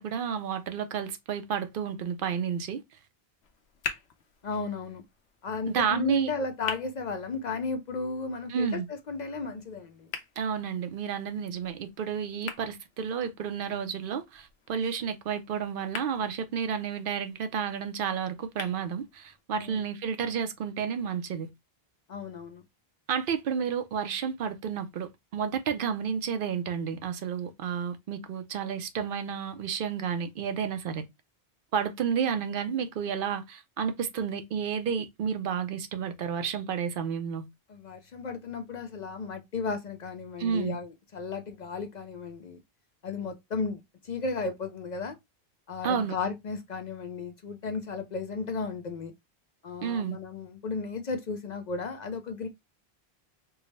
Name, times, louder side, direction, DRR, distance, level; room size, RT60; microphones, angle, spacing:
voice 1, 0.0-2.8 5.7-6.3 8.5-8.8 10.4-21.5 23.1-31.0 31.7-37.5 40.4-40.8 45.8-46.1 49.8-50.2, right 7 dB, 65° right, 0.7 m, -31 dB
sound 1, 3.4-19.4, left 6 dB, 85° left, 0.9 m, -45 dB
voice 2, 4.4-5.0 5.4-10.1 19.5-19.8 22.1-22.6 37.7-42.6 43.0-45.2 45.7-49.1 49.6-52.5, left 4 dB, 55° left, 0.5 m, -34 dB
4.5 x 2.0 x 3.1 m
omnidirectional pair, 1.0 m